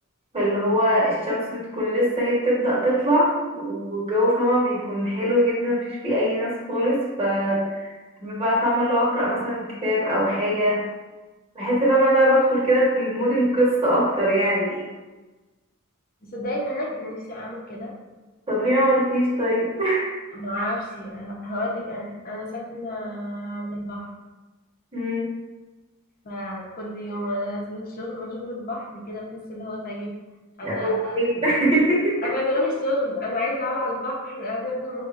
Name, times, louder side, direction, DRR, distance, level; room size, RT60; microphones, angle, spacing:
voice 1, 0.3-7.9 8.2-10.8 11.5-14.8 18.5-20.1 24.9-25.3 30.6-32.2, equal, 25° right, -6 dB, 1.4 m, -22 dB
voice 2, 16.3-17.9 20.3-24.1 26.2-30.1 30.6-31.2 32.2-35.0, left 1 dB, 45° left, -3 dB, 1.0 m, -30 dB
5.6 x 3.3 x 2.5 m, 1.2 s
head